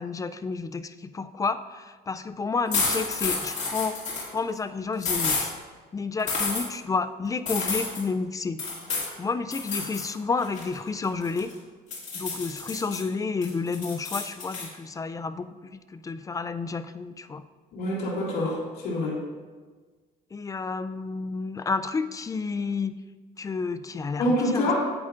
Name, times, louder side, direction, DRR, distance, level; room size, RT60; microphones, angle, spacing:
voice 1, 0.0-4.0 4.3-5.5 5.9-8.6 9.2-11.5 12.1-17.4 20.3-22.9 23.4-24.7, left 4 dB, 20° left, 12 dB, 0.3 m, -30 dB
sound 1, 2.7-4.3 5.0-5.5 6.3-6.6 7.5-8.0 8.6-9.1 9.5-10.1 10.4-11.5 11.9-13.0 13.4-14.7, left 4 dB, 45° left, 2.2 m, -29 dB
voice 2, 17.7-19.2 24.2-24.7, left 1 dB, 70° left, -4 dB, 2.4 m, -26 dB
9.3 x 8.4 x 2.5 m, 1.4 s
cardioid pair, 110°, 17 cm